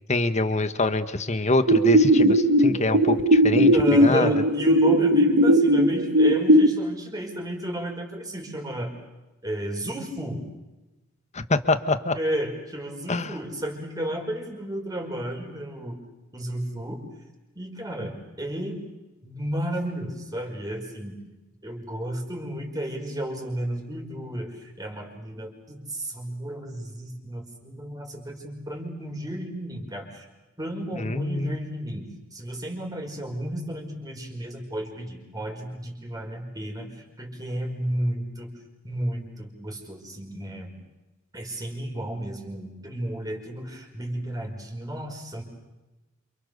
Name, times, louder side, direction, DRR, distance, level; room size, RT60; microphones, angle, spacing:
voice 1, 0.1-3.7 4.0-4.3 11.3-12.1 13.1-13.3 31.0-31.6, left 2 dB, 35° left, 10 dB, 1.6 m, -25 dB
sound 1, 1.7-6.7, equal, 60° right, 1.6 m, -18 dB
voice 2, 3.7-8.9 9.4-10.5 12.1-16.0 16.3-17.0 17.5-18.8 19.2-21.2 21.6-30.2 30.6-38.5 38.8-40.7 41.3-45.4, right 1 dB, 20° right, 2 dB, 5.2 m, -33 dB
28.5 x 28.0 x 6.9 m, 1.1 s
head